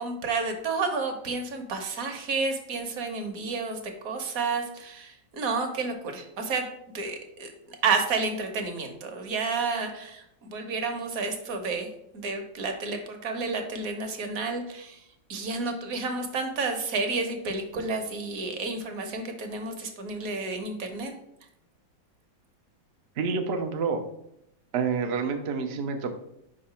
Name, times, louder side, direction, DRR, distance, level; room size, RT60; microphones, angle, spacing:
voice 1, 0.0-6.6 6.9-7.5 7.8-21.1, right 4 dB, 55° right, 5 dB, 1.1 m, -31 dB
voice 2, 23.2-24.0 24.7-26.2, right 5 dB, 90° right, 5 dB, 0.5 m, -28 dB
5.1 x 3.8 x 5.6 m, 0.79 s
omnidirectional pair, 2.1 m